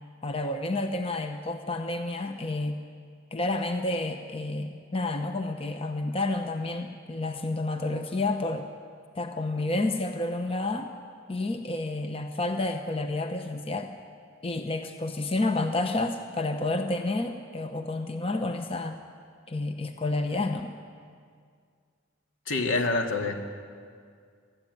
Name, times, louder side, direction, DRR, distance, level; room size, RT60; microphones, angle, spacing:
voice 1, 0.2-2.8 3.3-8.7 9.1-10.9 11.3-13.9 14.4-19.0 19.5-20.7, left 2 dB, 30° left, 6 dB, 0.9 m, -30 dB
voice 2, 22.5-23.3, left 3 dB, 75° left, 3 dB, 2.3 m, -26 dB
23.0 x 13.5 x 9.3 m, 2.1 s
head